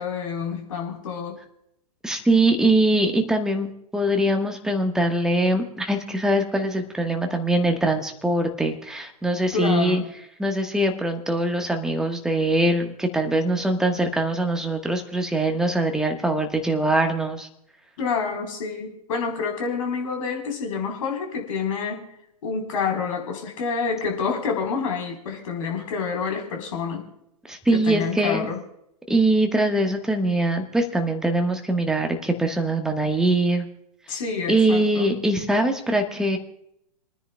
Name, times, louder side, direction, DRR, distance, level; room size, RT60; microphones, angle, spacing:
voice 1, 0.0-1.4 9.5-10.1 18.0-22.1 22.4-27.1 27.7-28.6 34.1-35.2, left 5 dB, 55° left, 2 dB, 4.1 m, -28 dB
voice 2, 2.0-10.0 10.4-17.5 27.4-28.5 29.1-33.6 34.5-36.4, right 1 dB, 5° right, 4 dB, 1.4 m, -22 dB
29.0 x 10.0 x 2.3 m, 0.77 s
figure-of-eight pair, 115°, 21 cm